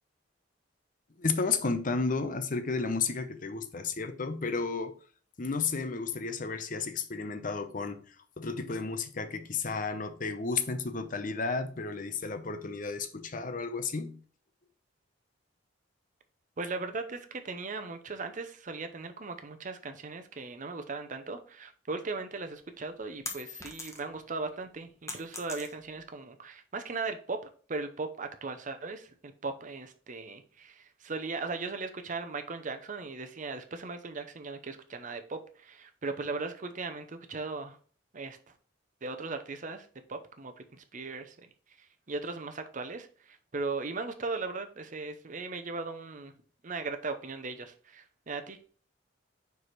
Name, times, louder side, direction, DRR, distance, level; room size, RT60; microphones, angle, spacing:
voice 1, 1.2-4.9 5.4-14.2, left 4 dB, 45° left, 0.7 m, -32 dB
voice 2, 16.6-27.4 27.7-37.8 38.1-38.5 39.0-41.4 41.8-46.3 46.6-48.6, right 3 dB, 45° right, 0.7 m, -38 dB
sound 1, 22.5-24.3 24.6-26.1, left 3 dB, 15° left, 1.1 m, -42 dB
4.9 x 4.7 x 4.1 m
head